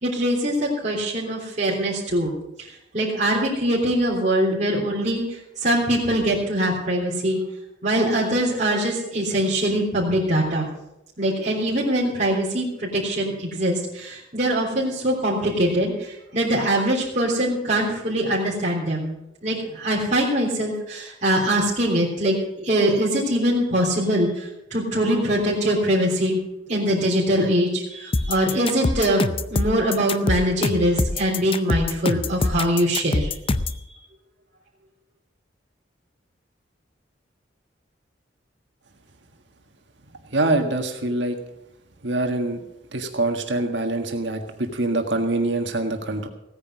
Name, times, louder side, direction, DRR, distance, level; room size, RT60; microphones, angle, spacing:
voice 1, 0.0-2.4 2.9-7.4 7.8-10.7 11.2-19.1 19.4-22.4 22.6-26.4 26.7-33.3, right 1 dB, 40° right, -6 dB, 3.5 m, -23 dB
sound 1, 28.1-33.8, left 2 dB, 30° left, 0.5 m, -24 dB
voice 2, 40.3-41.4 42.0-42.6 42.9-46.3, right 2 dB, 75° right, 4 dB, 1.7 m, -24 dB
16.5 x 9.9 x 6.2 m, 0.85 s
head